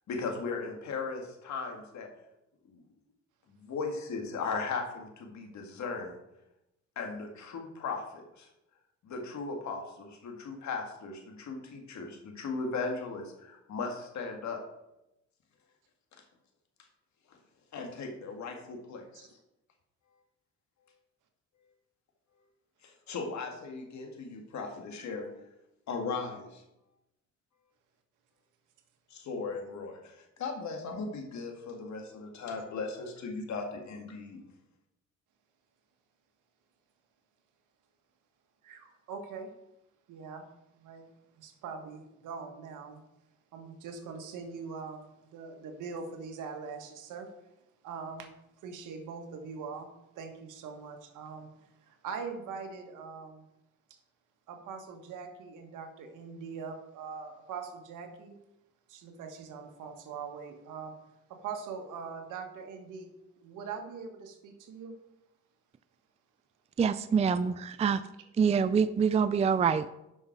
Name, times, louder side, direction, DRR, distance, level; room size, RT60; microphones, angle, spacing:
voice 1, 0.1-2.1 2.7-2.8 3.5-6.1 7.0-8.5 9.0-14.6 17.3-17.4 17.7-19.3 22.8-25.3 25.9-26.6 29.1-34.4, left 4 dB, 65° left, 3 dB, 2.1 m, -37 dB
voice 2, 38.6-39.5 40.1-40.5 40.8-41.1 41.3-43.0 43.5-47.3 47.8-48.3 48.6-53.4 54.5-58.4 58.9-60.9 61.3-65.0, right 5 dB, 90° right, 5 dB, 1.5 m, -42 dB
voice 3, 66.8-68.0 68.4-69.9, right 6 dB, 20° right, 13 dB, 0.4 m, -25 dB
10.5 x 5.7 x 4.6 m, 0.88 s
cardioid pair, 90°, 30 cm